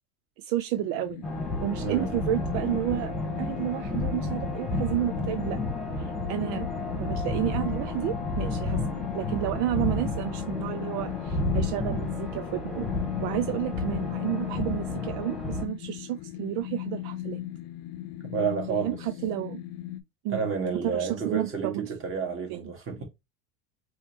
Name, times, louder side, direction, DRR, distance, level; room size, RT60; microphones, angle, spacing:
voice 1, 0.4-1.2 1.6-5.6 6.0-6.7 6.9-12.9 13.2-17.4 18.8-19.6 20.2-20.5 20.8-21.9 22.5-22.6, right 14 dB, 70° right, 0.6 m, -31 dB
sound 1, 0.8-20.0, left 14 dB, 60° left, 0.7 m, -38 dB
sound 2, 1.2-15.7, left 2 dB, ahead, 1.4 m, -31 dB
voice 2, 1.8-2.2 18.3-19.0 20.3-23.0, right 6 dB, 30° right, 2.3 m, -30 dB
4.7 x 3.1 x 3.1 m
supercardioid pair, 130°, 39 cm